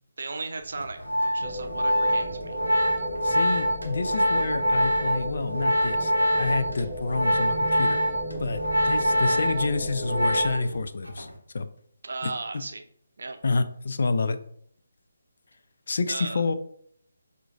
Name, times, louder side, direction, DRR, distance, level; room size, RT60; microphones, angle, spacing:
voice 1, 0.2-2.6 12.0-12.8 13.2-13.4 16.1-16.5, right 3 dB, 55° right, 6 dB, 0.6 m, -36 dB
Organ, 0.8-10.8 11.1-11.4, equal, 85° left, 1.1 m, -25 dB
sound 1, 1.4-10.5, equal, 20° left, 0.9 m, -35 dB
voice 2, 3.2-8.0 8.4-11.3 11.5-11.7 13.4-14.4 15.9-16.5, left 3 dB, 55° left, 10 dB, 0.3 m, -28 dB
7.3 x 2.5 x 2.5 m, 0.65 s
figure-of-eight pair, 145°, 0 cm